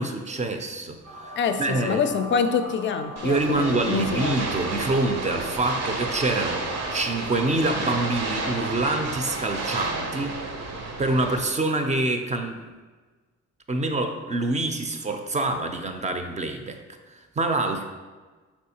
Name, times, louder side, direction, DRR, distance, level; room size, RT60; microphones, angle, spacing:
voice 1, 0.0-2.0 3.2-10.4 11.0-12.6 13.7-16.8 17.1-17.9, right 2 dB, 25° right, 6 dB, 0.4 m, -26 dB
sound 1, 1.0-8.2, right 1 dB, 80° right, 1.1 m, -40 dB
voice 2, 1.4-4.4, left 6 dB, 40° left, 9 dB, 0.4 m, -26 dB
sound 2, 3.2-11.4, right 3 dB, 60° right, 0.7 m, -31 dB
4.5 x 3.5 x 2.8 m, 1.3 s
cardioid pair, 90°, 30 cm